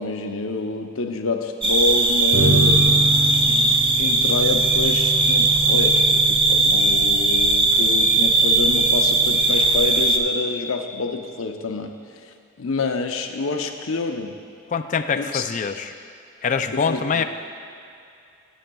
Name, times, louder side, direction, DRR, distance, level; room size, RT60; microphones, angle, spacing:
voice 1, 0.0-2.8 3.5-11.9 12.2-14.3 15.2-15.4 16.7-17.2, left 3 dB, 75° left, 4 dB, 0.7 m, -27 dB
sound 1, 1.6-10.2, right 2 dB, 25° right, 0.6 m, -18 dB
sound 2, 2.3-10.0, right 2 dB, 40° right, 1.3 m, -28 dB
voice 2, 14.7-15.9 16.4-17.2, left 6 dB, 40° left, 7 dB, 0.4 m, -24 dB
15.5 x 8.7 x 2.3 m, 2.5 s
head